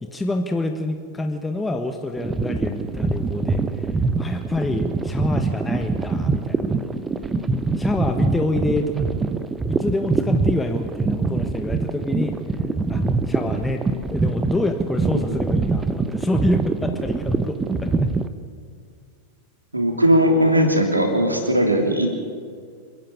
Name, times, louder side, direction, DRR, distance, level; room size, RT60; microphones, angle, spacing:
voice 1, 0.0-6.9 7.8-9.1 9.7-12.4 12.9-17.9, left 2 dB, 10° left, 4 dB, 1.4 m, -27 dB
sound 1, 2.2-18.3, right 3 dB, 15° right, 1.0 m, -24 dB
voice 2, 19.7-22.1, equal, 85° right, 3 dB, 3.3 m, -18 dB
28.5 x 10.5 x 8.8 m, 2.1 s
figure-of-eight pair, 90°, 0 cm